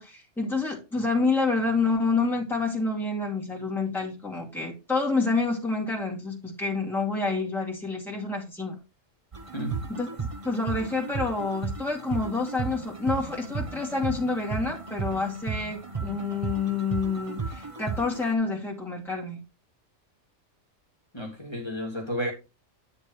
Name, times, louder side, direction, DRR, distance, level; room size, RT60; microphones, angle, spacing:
voice 1, 0.0-8.8 9.9-10.1 10.4-19.4, left 3 dB, ahead, 2.2 m, -28 dB
sound 1, 9.3-18.3, right 5 dB, 30° right, 1.0 m, -35 dB
voice 2, 9.5-9.9 21.1-22.3, equal, 20° left, 2.3 m, -32 dB
9.8 x 4.4 x 4.7 m
omnidirectional pair, 1.2 m